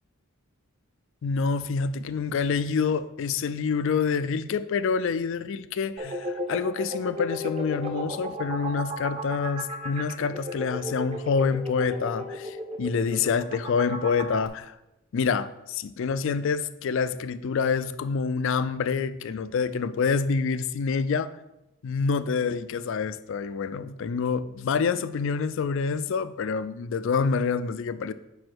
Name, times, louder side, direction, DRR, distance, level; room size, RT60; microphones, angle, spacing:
voice 1, 1.2-14.8 15.1-21.3 21.8-28.1, left 5 dB, 60° left, 0.4 m, -27 dB
sound 1, 6.0-14.5, equal, 25° right, 0.8 m, -34 dB
5.1 x 4.8 x 6.1 m
head